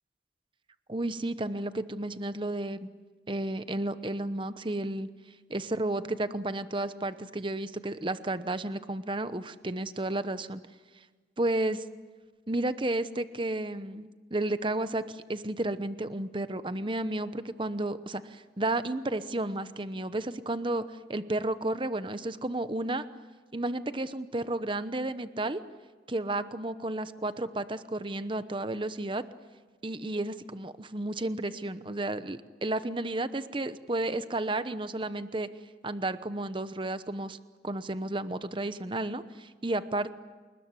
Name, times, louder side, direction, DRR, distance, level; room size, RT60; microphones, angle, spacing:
voice 1, 0.9-2.9 3.3-5.1 5.5-10.6 11.4-11.8 12.5-20.8 21.1-23.0 23.5-25.6 26.1-29.2 29.8-35.5 35.8-37.4 37.6-40.1, right 2 dB, 30° right, 12 dB, 1.0 m, -32 dB
28.5 x 20.0 x 9.8 m, 1.4 s
head